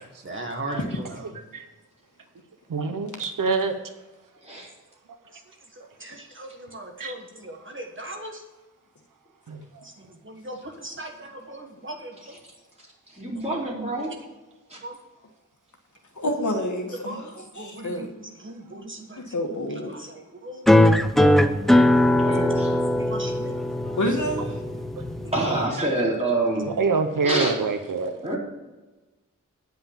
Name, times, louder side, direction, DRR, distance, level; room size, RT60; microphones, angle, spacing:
voice 1, 0.2-1.3 5.3-5.4 5.7-8.4 9.8-12.4 14.8-15.0 17.1-19.2 19.9-20.9 21.6-21.7 22.2-22.4 23.0-24.0 25.2-25.5 27.3-27.4, right 1 dB, 40° right, 3 dB, 1.5 m, -39 dB
voice 2, 2.7-3.7 7.0-7.1 9.5-9.8 24.4-24.5 25.8-25.9 26.8-28.1, right 4 dB, 85° right, 8 dB, 0.8 m, -25 dB
voice 3, 12.8-14.1 14.7-14.8 21.6-22.9 25.3-26.8 27.2-27.6 28.2-28.4, right 2 dB, 20° right, -4 dB, 3.9 m, -28 dB
voice 4, 16.1-18.1 19.2-19.9 23.9-24.8, left 1 dB, 65° left, 4 dB, 1.5 m, -29 dB
sound 1, 20.7-25.7, left 1 dB, ahead, 0.6 m, -20 dB
9.4 x 5.5 x 7.2 m, 1.1 s
wide cardioid pair, 75°, 31 cm